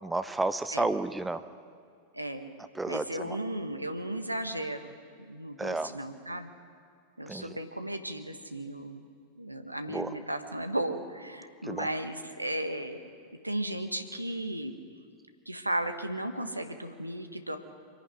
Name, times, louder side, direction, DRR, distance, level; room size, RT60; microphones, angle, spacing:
voice 1, 0.0-1.4 2.7-3.4 5.6-5.9 7.3-7.6 9.9-10.1 11.6-11.9, right 2 dB, 5° right, 11 dB, 0.8 m, -31 dB
voice 2, 2.1-2.5 2.9-4.9 5.3-6.5 7.2-9.1 9.4-13.0 13.4-14.7 15.4-17.6, right 1 dB, 85° right, 6 dB, 1.4 m, -35 dB
25.0 x 11.0 x 9.8 m, 2.3 s
figure-of-eight pair, 90°, 0 cm